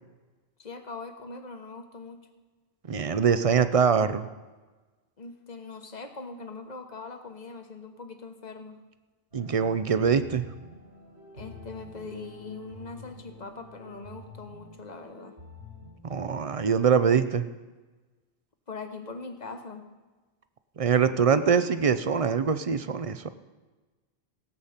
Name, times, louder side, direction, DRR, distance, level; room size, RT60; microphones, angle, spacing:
voice 1, 0.6-2.2 5.2-8.8 11.3-15.4 18.7-19.9, left 4 dB, 45° left, 7 dB, 1.1 m, -41 dB
voice 2, 2.9-4.3 9.3-10.5 16.1-17.5 20.8-23.3, right 6 dB, 40° right, 12 dB, 0.5 m, -23 dB
sound 1, 9.3-15.9, left 1 dB, 75° right, 4.5 m, -47 dB
17.0 x 8.1 x 5.7 m, 1.3 s
omnidirectional pair, 1.1 m